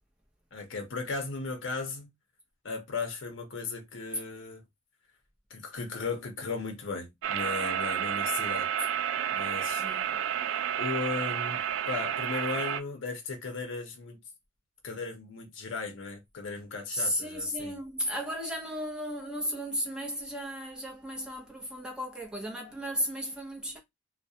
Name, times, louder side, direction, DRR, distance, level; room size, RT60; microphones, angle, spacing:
voice 1, 0.5-2.1 2.6-4.6 5.5-8.7 9.3-9.8 10.8-14.2 14.8-17.8, left 4 dB, 75° left, 0.6 m, -36 dB
sound 1, 7.2-12.8, right 9 dB, 75° right, 0.3 m, -31 dB
voice 2, 9.8-10.2 16.9-23.8, equal, 5° right, 0.6 m, -34 dB
2.3 x 2.1 x 2.7 m
head